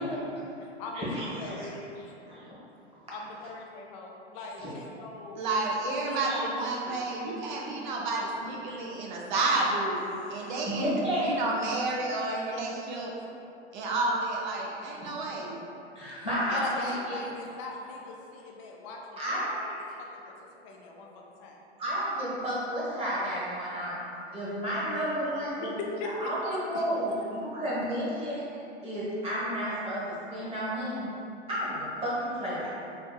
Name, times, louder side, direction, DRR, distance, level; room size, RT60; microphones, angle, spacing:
voice 1, 0.0-2.1 3.1-5.4 6.0-6.6 6.8-7.1 10.1-10.7 16.1-20.3 20.6-21.1 21.4-21.6 25.6-26.6, left 3 dB, 30° left, 0 dB, 0.4 m, -40 dB
voice 2, 0.9-1.7 2.3-2.4 4.6-4.7 6.3-6.4 10.7-11.3 15.9-17.2 19.2-19.7 21.8-24.0 24.3-25.7 26.0-28.4 28.8-31.1 31.5-32.7, equal, 15° right, -8 dB, 1.0 m, -31 dB
voice 3, 5.4-10.0 10.3-10.9 11.2-13.1 13.7-15.6, right 2 dB, 45° right, -2 dB, 0.5 m, -30 dB
4.3 x 2.6 x 2.2 m, 2.8 s
figure-of-eight pair, 105°, 34 cm